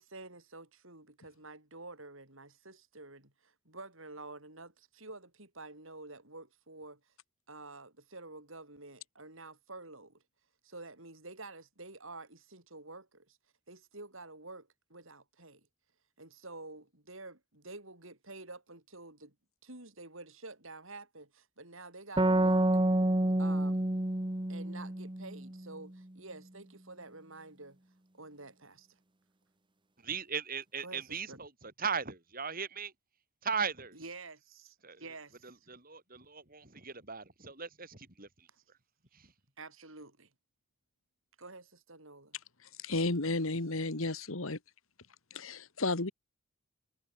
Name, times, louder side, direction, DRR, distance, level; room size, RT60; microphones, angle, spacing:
voice 1, 0.0-7.0 7.5-10.2 10.6-13.4 13.7-15.7 16.2-19.3 19.6-22.7 23.4-23.9 24.5-27.8 28.1-28.9 30.8-31.4 33.9-35.6 38.5-38.6 39.6-40.3 41.4-42.4, right 2 dB, 65° right, 7.0 m, -49 dB
sound 1, 22.2-25.7, right 1 dB, 20° right, 1.3 m, -28 dB
voice 2, 30.0-32.9 33.4-34.0 34.8-35.1 35.4-38.5 39.1-39.3, right 6 dB, 40° right, 6.6 m, -38 dB
voice 3, 42.8-44.6 45.3-46.1, left 2 dB, 70° left, 1.9 m, -32 dB
head